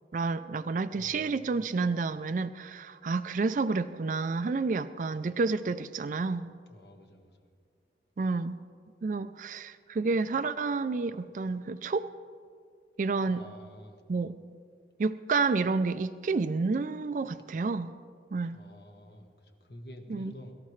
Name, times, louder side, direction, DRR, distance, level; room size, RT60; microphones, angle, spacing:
voice 1, 0.1-6.5 8.2-8.6 9.0-12.1 13.0-13.4 14.1-14.4 15.0-17.9 18.3-18.6 20.1-20.3, right 4 dB, 45° right, 11 dB, 0.3 m, -30 dB
voice 2, 1.0-1.5 6.7-7.3 13.2-14.0 18.5-20.5, equal, 65° left, 3 dB, 1.5 m, -49 dB
23.5 x 13.5 x 3.2 m, 2.2 s
head